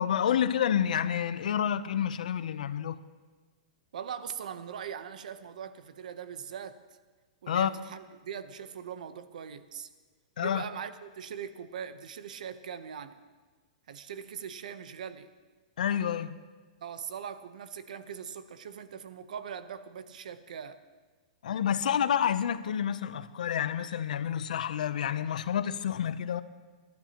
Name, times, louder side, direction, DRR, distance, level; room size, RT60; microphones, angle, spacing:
voice 1, 0.0-3.0 7.5-7.7 10.4-10.6 15.8-16.4 21.4-26.4, left 9 dB, 80° left, 0.7 m, -29 dB
voice 2, 3.9-6.8 7.4-9.9 10.4-13.2 13.9-15.3 16.8-20.8, right 7 dB, 75° right, 0.9 m, -41 dB
23.5 x 11.5 x 3.0 m
supercardioid pair, 170°, 4 cm